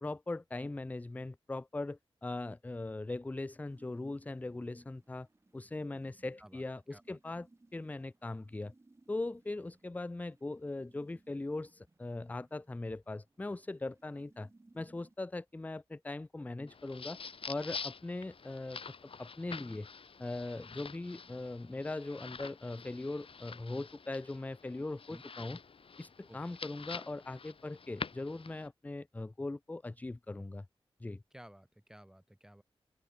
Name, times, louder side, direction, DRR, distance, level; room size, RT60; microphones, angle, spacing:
voice 1, 0.0-5.3 5.5-8.7 9.1-14.5 14.7-17.2 17.5-18.8 19.2-19.9 20.2-25.6 26.0-30.7 31.0-31.2, left 2 dB, 15° left, 0.4 m, -40 dB
sound 1, 3.7-15.1, right 2 dB, 25° right, 3.2 m, -66 dB
sound 2, 16.7-28.7, left 5 dB, 65° left, 2.3 m, -47 dB
voice 2, 31.3-32.6, equal, 5° right, 1.6 m, -54 dB
open air
wide cardioid pair, 115°, 10 cm